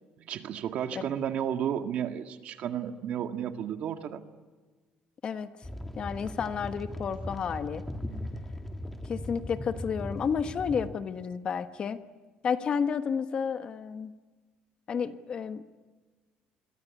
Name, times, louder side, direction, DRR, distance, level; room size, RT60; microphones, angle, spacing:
voice 1, 0.2-4.2, right 9 dB, 55° right, 8 dB, 1.9 m, -32 dB
sound 1, 5.6-10.9, left 1 dB, 10° left, 1.8 m, -38 dB
voice 2, 6.0-7.8 9.0-12.0 12.4-14.1 14.9-15.8, left 6 dB, 35° left, 10 dB, 1.3 m, -31 dB
28.0 x 23.5 x 8.4 m, 1.3 s
cardioid pair, 150°, 3 cm